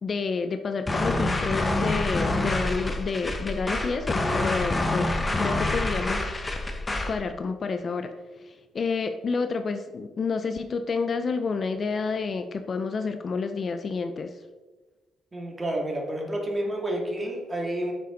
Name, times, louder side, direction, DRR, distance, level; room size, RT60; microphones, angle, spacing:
voice 1, 0.0-6.3 7.1-14.4, left 4 dB, 45° left, 9 dB, 0.6 m, -29 dB
sound 1, 0.9-7.2, left 2 dB, 20° left, 1.2 m, -27 dB
voice 2, 15.3-17.9, right 1 dB, 20° right, 0 dB, 2.4 m, -30 dB
10.0 x 6.8 x 3.9 m, 1.3 s
cardioid pair, 90°, 0 cm